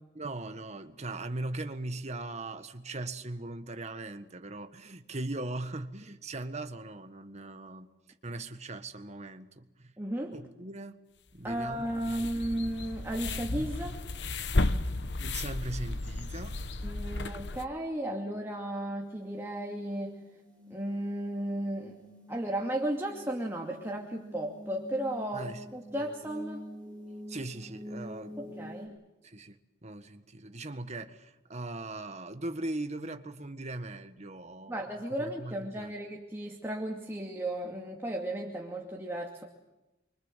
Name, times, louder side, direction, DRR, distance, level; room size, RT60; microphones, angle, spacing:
voice 1, 0.1-7.9 8.2-9.9 10.3-11.0 11.3-12.1 12.5-12.6 15.2-16.6 25.3-25.6 27.3-28.8 29.2-29.6 29.8-34.9 35.2-35.9, right 2 dB, 40° right, 1.6 m, -39 dB
voice 2, 10.0-10.3 11.4-14.0 16.8-20.2 20.7-21.9 22.3-26.7 28.4-28.9 34.7-39.4, right 1 dB, 15° right, 2.5 m, -34 dB
sound 1, 11.5-17.6, left 2 dB, 75° left, 1.1 m, -33 dB
sound 2, 19.0-28.9, equal, 5° left, 7.6 m, -47 dB
28.5 x 24.5 x 7.6 m
head